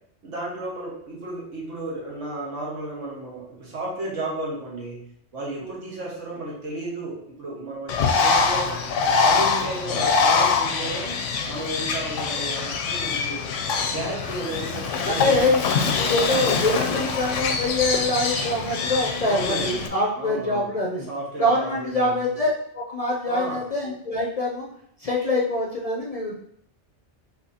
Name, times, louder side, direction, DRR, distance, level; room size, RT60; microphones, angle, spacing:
voice 1, 0.2-5.0 5.3-8.7 9.0-11.1 11.5-13.5 13.9-15.6 19.3-19.8 20.1-20.7 21.1-22.2 23.3-23.6, right 2 dB, 85° right, -3 dB, 1.7 m, -33 dB
Bird, 7.9-19.9, left 5 dB, 90° left, 0.9 m, -24 dB
voice 2, 15.0-15.7 16.0-21.1 21.4-24.7 25.0-26.3, left 1 dB, 45° left, -2 dB, 0.5 m, -24 dB
5.8 x 3.0 x 2.8 m, 0.71 s
omnidirectional pair, 1.2 m